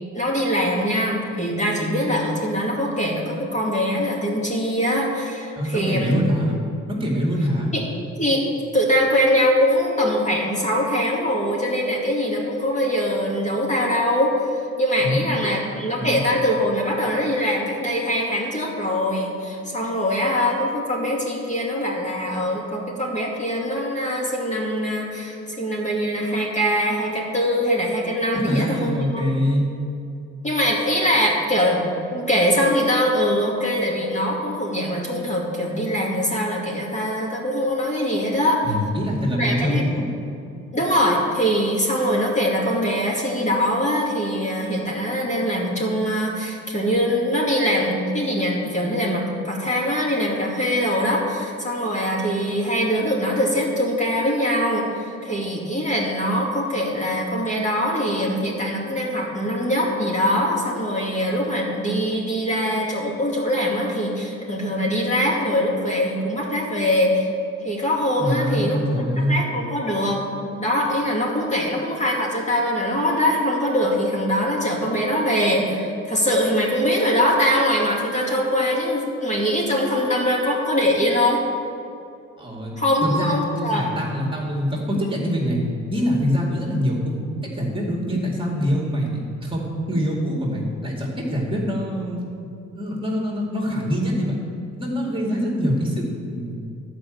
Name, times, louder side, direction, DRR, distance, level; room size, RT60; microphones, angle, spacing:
voice 1, 0.1-6.2 7.7-7.8 8.2-8.4 8.7-14.3 14.8-29.2 30.4-31.8 32.1-38.6 39.4-39.8 40.7-67.3 67.6-68.8 69.3-70.2 70.6-81.4 82.8-83.8, equal, 25° left, -4 dB, 2.4 m, -22 dB
voice 2, 5.6-6.5 6.9-7.7 15.0-15.3 15.7-16.2 28.3-29.7 38.6-40.0 68.2-69.3 82.4-82.8 83.0-85.6 85.9-92.2 92.7-94.3 94.7-96.5, equal, 15° right, -3 dB, 2.3 m, -24 dB
11.0 x 5.2 x 7.9 m, 2.6 s
cardioid pair, 90°, 30 cm